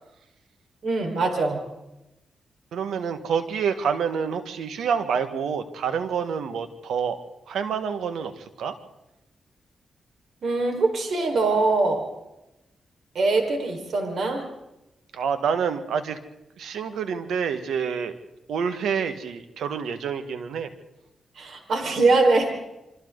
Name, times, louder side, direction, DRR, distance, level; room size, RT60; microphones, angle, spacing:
voice 1, 0.8-1.6 10.4-12.0 13.1-14.4 21.4-22.5, right 3 dB, 70° right, 3 dB, 5.1 m, -22 dB
voice 2, 2.7-8.8 15.1-16.2 16.6-18.1 18.5-20.7, right 6 dB, 85° right, 9 dB, 1.8 m, -27 dB
28.0 x 25.0 x 4.1 m, 0.94 s
cardioid pair, 75°, 0 cm